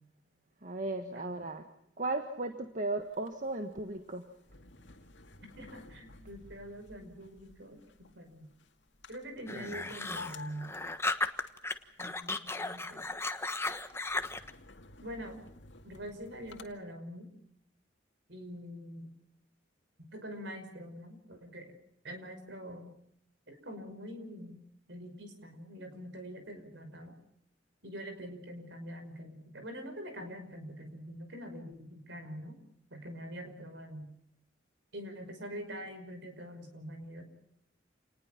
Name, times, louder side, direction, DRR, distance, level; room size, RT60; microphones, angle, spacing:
voice 1, 0.6-1.7 2.0-4.3, right 2 dB, 45° right, 6 dB, 1.5 m, -36 dB
voice 2, 1.1-1.4 5.6-8.5 9.1-10.7 12.0-13.1 15.0-15.4 15.8-17.3 18.3-19.1 20.0-21.7 22.0-22.9 23.5-24.6 24.9-27.2 27.8-32.6 32.9-34.1 34.9-37.2, equal, 70° right, 7 dB, 5.8 m, -44 dB
sound 1, 3.0-16.7, left 3 dB, 75° left, 2.2 m, -54 dB
sound 2, 9.5-11.7 12.0-14.5, left 2 dB, 15° left, 1.4 m, -35 dB
29.0 x 20.0 x 5.9 m, 0.75 s
head